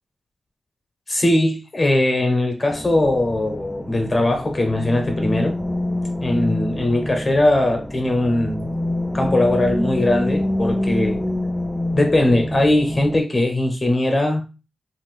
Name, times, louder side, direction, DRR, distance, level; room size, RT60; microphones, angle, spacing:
voice 1, 1.1-5.6 6.2-8.7 9.1-11.3 11.9-14.4, left 1 dB, 35° left, 0.8 m, -20 dB
sound 1, 2.7-13.2, left 1 dB, 5° left, 0.4 m, -26 dB
2.7 x 2.5 x 3.3 m
cardioid pair, 65°, 0 cm